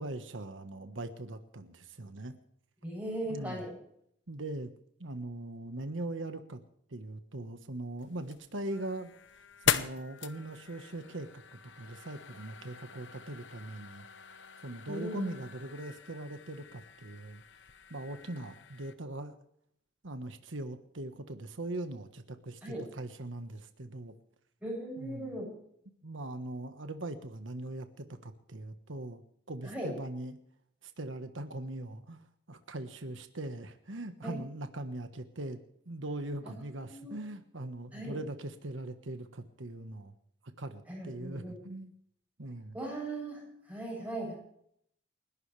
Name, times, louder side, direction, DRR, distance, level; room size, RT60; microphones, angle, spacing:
voice 1, 0.0-2.3 3.3-3.6 4.3-4.7 5.0-6.6 6.9-9.1 9.6-14.0 14.6-17.4 17.9-19.4 20.0-24.1 25.0-25.3 26.0-29.2 29.5-30.4 30.8-32.2 32.5-35.6 35.9-40.1 40.6-41.9 42.4-42.7, right 1 dB, 80° right, 8 dB, 1.4 m, -41 dB
voice 2, 2.8-3.8 14.9-15.3 22.6-22.9 24.6-25.5 29.6-29.9 34.2-34.4 36.4-36.5 36.9-37.2 37.9-38.2 40.9-41.6 42.7-44.3, right 1 dB, 10° right, -1 dB, 7.9 m, -38 dB
sound 1, 8.0-18.9, left 7 dB, 70° left, 1.0 m, -40 dB
29.5 x 12.0 x 3.4 m, 0.70 s
head